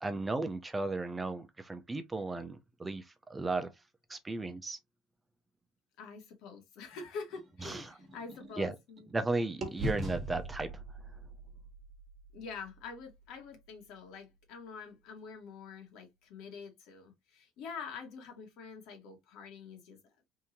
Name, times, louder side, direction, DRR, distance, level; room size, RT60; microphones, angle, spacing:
voice 1, 0.0-3.0 3.3-3.7 4.1-4.8 7.6-7.8 8.6-8.7 9.1-10.7, right 3 dB, 15° right, 0.5 m, -35 dB
voice 2, 6.0-9.1 12.3-20.0, left 5 dB, 70° left, 1.7 m, -46 dB
sound 1, 6.9-9.2 9.6-13.6, equal, 30° right, 1.3 m, -42 dB
3.6 x 2.7 x 2.9 m
cardioid pair, 130°, 0 cm